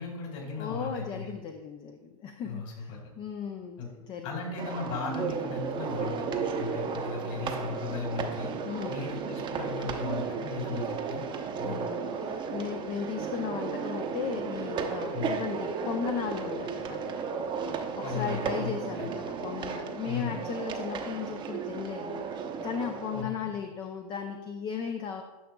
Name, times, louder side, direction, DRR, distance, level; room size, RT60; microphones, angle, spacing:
voice 1, 0.0-1.3 2.4-3.1 3.8-3.9 4.2-8.5 8.9-11.2 11.6-11.9 15.1-15.3 18.0-18.7 19.0-19.1 20.1-20.4 23.1-23.5, left 5 dB, 50° left, 0 dB, 2.4 m, -37 dB
voice 2, 0.6-3.8 4.0-4.3 8.7-8.9 11.6-17.1 18.0-25.2, left 7 dB, 25° left, 5 dB, 0.4 m, -36 dB
sound 1, 4.6-23.2, right 5 dB, 25° right, 0.7 m, -34 dB
10.0 x 5.8 x 2.2 m, 1.1 s
hypercardioid pair, 120°, 20 cm